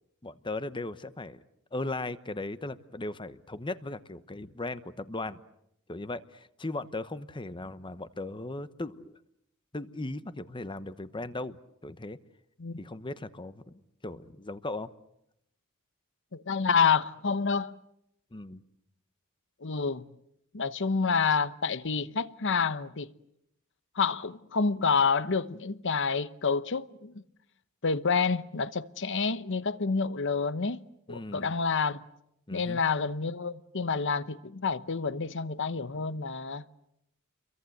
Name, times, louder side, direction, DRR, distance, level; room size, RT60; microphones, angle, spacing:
voice 1, 0.2-1.4 1.7-5.4 5.9-9.1 9.7-11.6 11.8-12.2 12.8-14.9 18.3-18.6 31.1-31.5 32.5-32.8, left 2 dB, 20° left, 1.0 m, -37 dB
voice 2, 16.3-17.8 19.6-20.1 20.5-23.1 23.9-27.2 27.8-30.8 31.1-32.0 32.5-36.6, left 5 dB, 55° left, 1.0 m, -28 dB
30.0 x 23.0 x 7.9 m
head